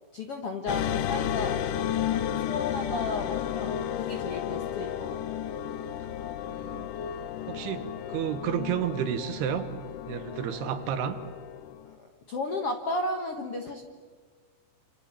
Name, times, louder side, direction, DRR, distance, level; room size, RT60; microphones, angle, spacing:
voice 1, 0.1-5.2 11.8-11.9 12.3-13.8, left 2 dB, 60° left, 3 dB, 1.5 m, -34 dB
sound 1, 0.7-11.9, left 10 dB, 85° left, 1.8 m, -33 dB
voice 2, 6.4-6.9 7.5-9.7 10.1-11.2, right 9 dB, 70° right, 10 dB, 3.1 m, -31 dB
28.5 x 28.0 x 7.2 m, 1.5 s
omnidirectional pair, 5.1 m